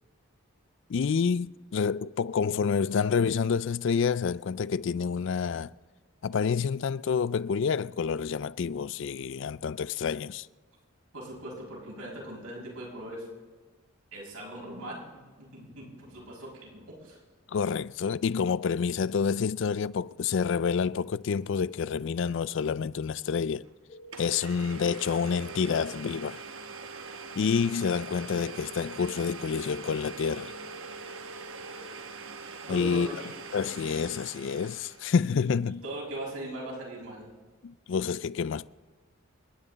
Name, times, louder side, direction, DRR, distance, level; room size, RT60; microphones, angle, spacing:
voice 1, 0.9-5.7 6.2-10.5 17.5-23.6 24.2-26.4 27.4-30.5 32.7-33.1 33.5-35.8 37.6-38.7, left 6 dB, 55° left, 0.3 m, -28 dB
voice 2, 11.1-13.3 14.1-17.2 32.6-33.3 35.8-37.3, right 1 dB, 90° right, 5.9 m, -40 dB
Domestic sounds home sounds, 23.6-23.7 24.1-35.2, right 4 dB, 65° right, 1.0 m, -43 dB
sound 1, 23.9-25.8 29.8-31.8 35.8-36.7, right 1 dB, 35° left, 1.3 m, -48 dB
28.5 x 9.9 x 4.0 m
head